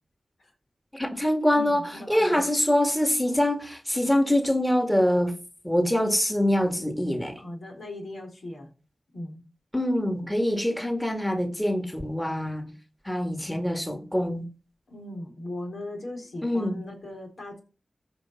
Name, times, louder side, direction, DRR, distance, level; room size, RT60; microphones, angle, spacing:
voice 1, 0.9-5.3 5.6-7.4 9.7-12.7 13.1-14.5 16.4-16.8, left 1 dB, 10° left, 1.9 m, -24 dB
voice 2, 1.5-2.5 7.4-8.7 9.1-9.4 14.9-17.6, left 1 dB, 75° left, 4.0 m, -38 dB
14.5 x 5.4 x 5.8 m
cardioid pair, 55°, 0 cm